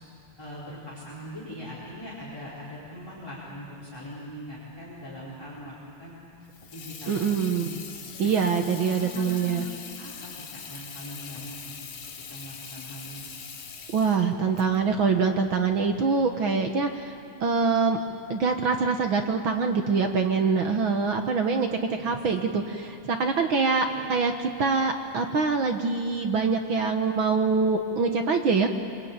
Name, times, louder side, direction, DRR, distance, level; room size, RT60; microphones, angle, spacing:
voice 1, 0.4-6.2 6.7-7.8 8.2-8.3 8.6-11.9 12.3-13.3 21.9-22.5 23.2-23.5 23.8-24.1, equal, 5° left, -8 dB, 4.8 m, -41 dB
Water tap faucet / Sink (filling or washing), 6.4-16.0, left 6 dB, 80° left, 3.5 m, -42 dB
voice 2, 7.1-7.7 8.2-9.6 13.9-17.1 17.4-18.0 18.3-21.7 22.0-24.3 24.6-28.7, right 5 dB, 55° right, 5 dB, 1.5 m, -24 dB
27.0 x 24.5 x 8.9 m, 2.5 s
omnidirectional pair, 3.4 m